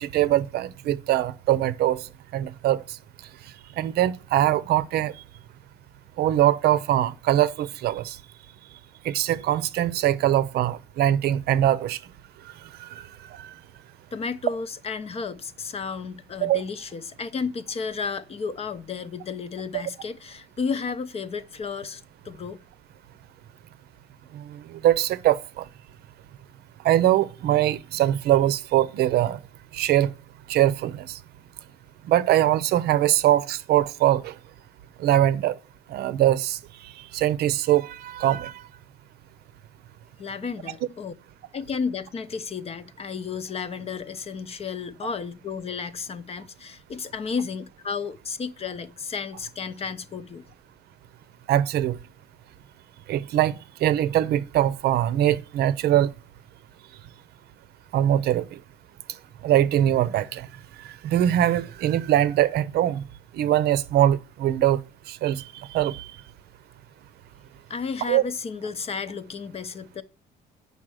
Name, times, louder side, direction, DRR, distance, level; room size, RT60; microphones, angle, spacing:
voice 1, 0.0-3.0 3.8-5.1 6.2-8.2 9.0-12.0 12.8-13.0 13.3-13.5 16.4-16.6 24.3-25.7 26.8-29.4 29.7-30.1 30.5-31.2 32.1-34.4 35.0-35.6 35.9-36.6 37.0-38.5 51.5-52.0 53.1-56.1 57.9-58.6 59.4-60.5 60.8-63.0 63.3-64.8 65.1-66.1 68.1-68.2, right 12 dB, 70° right, 0.7 m, -22 dB
voice 2, 14.1-22.6 40.2-41.1 41.5-50.4 67.7-70.0, left 5 dB, 35° left, 0.7 m, -32 dB
7.4 x 5.6 x 6.3 m
cardioid pair, 110°, 17 cm